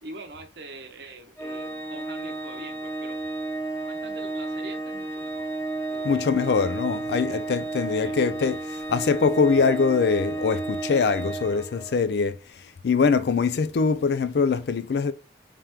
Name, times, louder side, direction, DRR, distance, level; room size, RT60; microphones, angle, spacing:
voice 1, 0.0-3.2 3.8-5.5 5.9-7.5 8.0-8.2, right 2 dB, 70° right, 0.7 m, -44 dB
Organ, 1.4-12.1, right 2 dB, 15° left, 0.6 m, -32 dB
voice 2, 6.0-15.1, left 5 dB, 65° left, 0.4 m, -23 dB
3.5 x 3.3 x 2.9 m
head